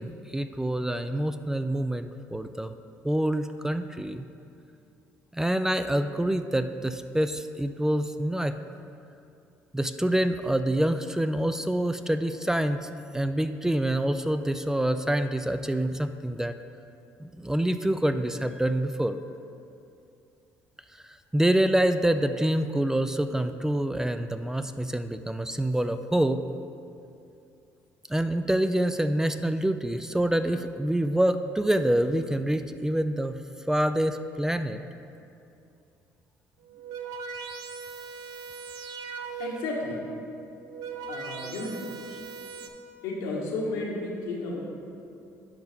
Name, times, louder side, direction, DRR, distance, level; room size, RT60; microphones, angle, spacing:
voice 1, 0.0-2.7 3.0-4.2 5.3-8.5 9.7-16.6 17.2-19.2 21.3-26.4 28.1-34.8, right 1 dB, 10° right, 9 dB, 0.3 m, -26 dB
sound 1, 36.6-39.8 40.5-42.7, right 5 dB, 75° right, 0.7 m, -39 dB
voice 2, 39.4-40.1 41.1-41.8 43.0-44.6, left 2 dB, 85° left, -3 dB, 1.5 m, -32 dB
10.5 x 5.4 x 3.5 m, 2.6 s
supercardioid pair, 75°, 7 cm